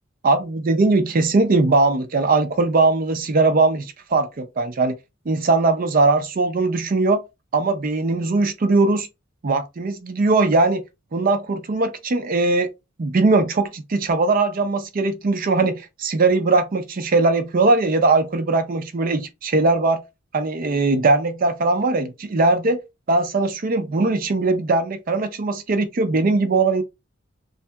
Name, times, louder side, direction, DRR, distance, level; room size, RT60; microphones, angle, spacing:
voice 1, 0.2-4.9 5.3-7.2 7.5-9.1 9.4-10.8 11.1-12.7 13.0-20.0 20.3-22.8 23.1-26.8, right 3 dB, 45° right, 0.4 m, -20 dB
3.2 x 2.7 x 2.2 m
head